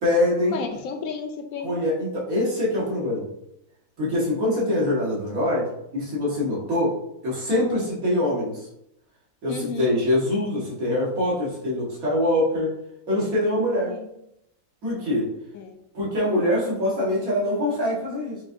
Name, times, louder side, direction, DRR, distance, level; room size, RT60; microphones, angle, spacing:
voice 1, 0.0-0.6 1.6-3.3 4.0-7.0 7.2-8.7 9.4-12.7 13.1-13.9 14.8-15.3 15.9-18.4, left 1 dB, 80° right, -6 dB, 1.9 m, -24 dB
voice 2, 0.5-1.7 9.5-9.9 13.8-14.1 15.5-15.8, left 6 dB, 80° left, 5 dB, 1.0 m, -32 dB
5.8 x 2.5 x 2.7 m, 0.80 s
omnidirectional pair, 1.5 m